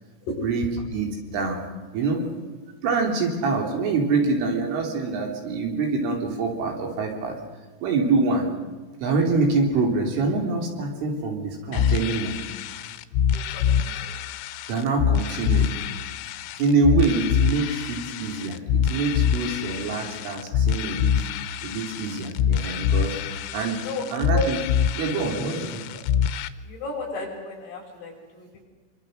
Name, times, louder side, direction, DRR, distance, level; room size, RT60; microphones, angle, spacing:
voice 1, 0.9-1.7 1.9-2.2 2.8-7.4 7.8-8.5 9.0-12.3 14.7-15.8 16.6-21.2 21.6-23.8 24.1-24.7 25.0-26.0, right 3 dB, 70° right, 1 dB, 5.8 m, -25 dB
sound 1, 11.7-26.5, left 8 dB, 85° left, 3.7 m, -25 dB
voice 2, 13.3-14.2 23.7-24.0 26.6-28.6, left 3 dB, 50° left, -1 dB, 8.0 m, -35 dB
26.5 x 24.5 x 6.6 m, 1.4 s
omnidirectional pair, 6.0 m